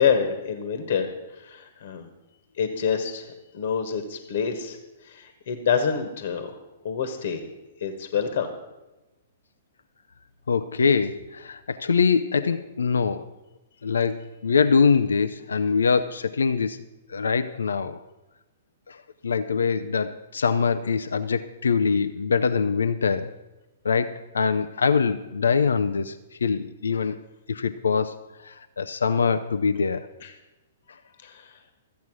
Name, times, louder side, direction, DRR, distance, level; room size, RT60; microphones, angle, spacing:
voice 1, 0.0-2.1 2.6-4.8 5.0-6.5 6.8-7.4 7.8-8.5 30.2-30.3 31.2-31.5, left 7 dB, 60° left, 8 dB, 1.3 m, -27 dB
voice 2, 10.5-13.3 13.8-16.8 17.1-18.0 18.9-23.3 23.8-26.2 26.4-27.2 27.5-30.1, left 5 dB, 75° left, 11 dB, 0.5 m, -23 dB
13.5 x 8.1 x 6.2 m, 1.1 s
figure-of-eight pair, 115°, 0 cm